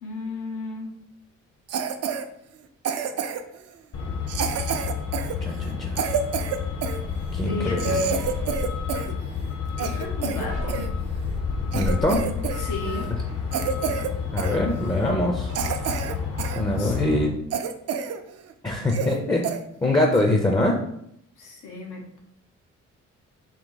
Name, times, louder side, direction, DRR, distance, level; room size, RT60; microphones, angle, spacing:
voice 1, 0.0-0.9 7.4-8.2 9.8-10.9 12.6-13.1 16.6-17.2 21.4-22.1, left 2 dB, 90° left, 0 dB, 1.0 m, -34 dB
Cough, 1.7-2.2 2.8-3.6 4.3-7.0 7.5-7.6 7.8-9.1 9.4-10.9 11.4-11.5 11.7-12.6 12.9-13.1 13.5-14.1 14.4-14.6 15.1-15.2 15.5-16.6 17.0-17.1 17.5-18.2 18.5-18.6 18.9-19.2 19.4-19.6 20.1-20.3, right 6 dB, 55° right, 0.4 m, -28 dB
Truck, 3.9-17.3, left 5 dB, 55° left, 0.7 m, -30 dB
voice 2, 5.4-6.0 7.3-7.9 11.7-12.2 14.3-15.5 16.6-17.3 18.6-19.5 19.8-20.8, left 1 dB, 15° left, 1 dB, 0.5 m, -23 dB
sound 1, 8.0-8.4 10.5-10.9 12.8-13.3 15.5-16.0, right 4 dB, 75° right, 0.8 m, -43 dB
3.7 x 2.6 x 3.9 m, 0.74 s
cardioid pair, 90°, 30 cm